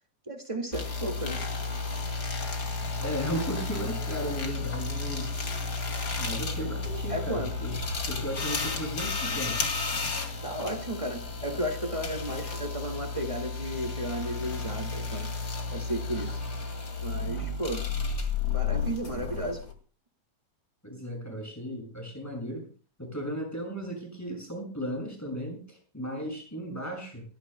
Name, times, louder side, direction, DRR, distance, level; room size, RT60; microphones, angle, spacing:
voice 1, 0.2-1.4 7.1-7.5 10.4-15.3 15.7-16.4 17.0-17.9 18.5-19.6, right 1 dB, 30° right, 3 dB, 0.6 m, -34 dB
sound 1, 0.7-19.7, left 4 dB, 35° left, 2.3 m, -32 dB
voice 2, 3.0-5.4 6.2-7.7 8.1-9.6 20.8-22.7 23.0-27.2, equal, 5° left, 1 dB, 6.3 m, -35 dB
29.0 x 13.5 x 2.2 m, 0.35 s
omnidirectional pair, 4.1 m